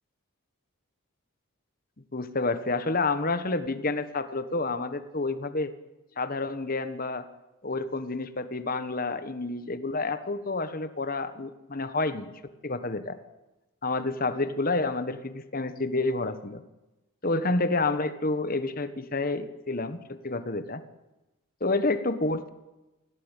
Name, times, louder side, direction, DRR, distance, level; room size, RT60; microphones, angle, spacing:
voice 1, 2.1-5.7 6.2-7.3 7.6-12.3 12.6-13.2 13.8-16.6 17.2-20.8 21.6-22.5, left 3 dB, 40° left, 11 dB, 1.4 m, -29 dB
21.5 x 15.5 x 9.2 m, 1.0 s
head